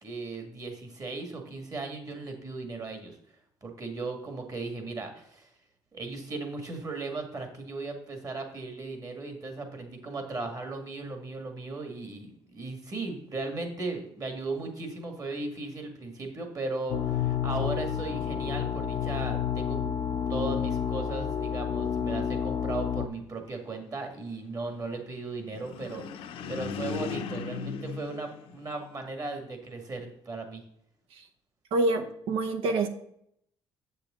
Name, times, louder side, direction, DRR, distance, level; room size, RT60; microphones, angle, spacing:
voice 1, 0.0-3.2 3.6-5.5 5.9-20.0 20.3-30.6, right 3 dB, 40° right, 4 dB, 2.0 m, -37 dB
sound 1, 16.9-23.1, left 8 dB, 55° left, 0.5 m, -30 dB
sound 2, 25.5-29.1, left 6 dB, 85° left, 0.8 m, -37 dB
voice 2, 31.7-32.9, right 2 dB, 85° right, 8 dB, 1.0 m, -26 dB
7.8 x 6.7 x 3.7 m, 0.72 s
cardioid pair, 90°, 9 cm